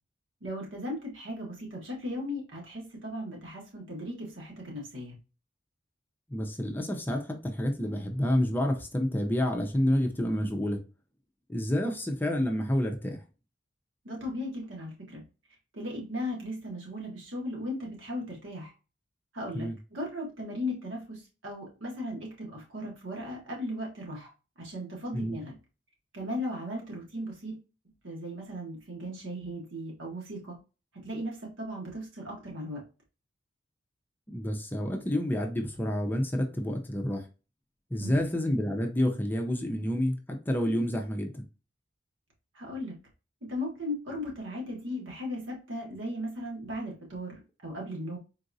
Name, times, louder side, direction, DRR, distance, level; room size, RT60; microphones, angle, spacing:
voice 1, 0.4-5.2 14.0-15.2 15.7-18.7 19.3-24.3 24.6-25.6 26.1-27.6 28.0-30.6 31.0-32.8 38.0-38.2 42.5-43.0 43.4-48.2, left 1 dB, 85° right, 1.4 m, -37 dB
voice 2, 6.3-10.8 11.5-13.2 19.5-19.8 25.1-25.4 34.3-37.2 37.9-41.5, left 1 dB, 10° left, 0.5 m, -29 dB
3.9 x 2.5 x 2.6 m
head